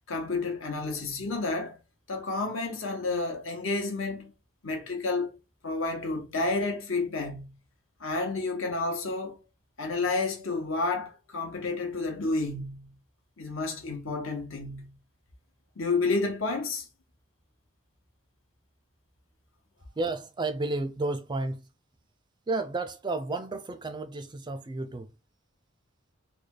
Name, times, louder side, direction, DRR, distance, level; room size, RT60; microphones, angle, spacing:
voice 1, 0.1-1.8 2.1-4.3 4.6-5.4 5.6-7.5 8.0-9.4 9.8-12.9 13.4-14.9 15.8-16.9, left 3 dB, 70° left, 1.1 m, -30 dB
voice 2, 20.0-21.6 22.5-25.1, right 2 dB, 20° right, 0.4 m, -32 dB
3.3 x 2.3 x 3.7 m
head